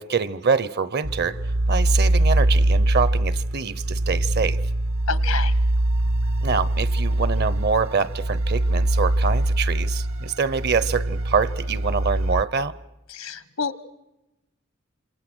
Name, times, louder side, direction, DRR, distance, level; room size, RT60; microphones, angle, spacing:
voice 1, 0.0-1.4 1.7-4.6 6.4-12.7, right 5 dB, 50° right, 0.8 m, -25 dB
sound 1, 1.0-12.4, right 1 dB, 70° right, 1.3 m, -22 dB
voice 2, 5.1-5.5 13.1-13.9, left 5 dB, 90° left, 1.4 m, -29 dB
27.5 x 27.5 x 6.3 m
head